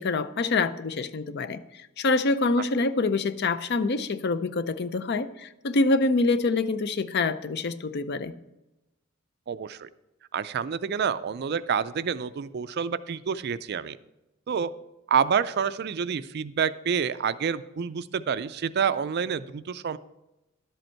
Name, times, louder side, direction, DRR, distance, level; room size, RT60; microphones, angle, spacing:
voice 1, 0.0-8.3, left 3 dB, 50° left, 13 dB, 0.5 m, -26 dB
voice 2, 9.5-9.9 10.3-14.0 14.5-14.7 15.1-20.0, right 7 dB, 50° right, 15 dB, 0.4 m, -28 dB
11.5 x 7.8 x 4.4 m, 0.98 s
head